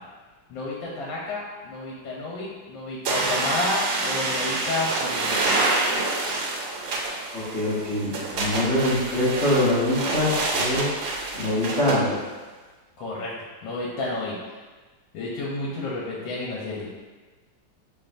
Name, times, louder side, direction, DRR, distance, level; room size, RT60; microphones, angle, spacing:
voice 1, 0.5-5.5 13.0-13.3 13.6-14.4 15.1-16.9, left 2 dB, 85° left, -5 dB, 1.6 m, -31 dB
sound 1, 3.1-12.0, right 3 dB, 85° right, 1.4 m, -27 dB
voice 2, 7.3-11.0 11.4-12.2, left 1 dB, 40° left, -12 dB, 1.4 m, -24 dB
6.6 x 3.0 x 2.5 m, 1.3 s
omnidirectional pair, 2.1 m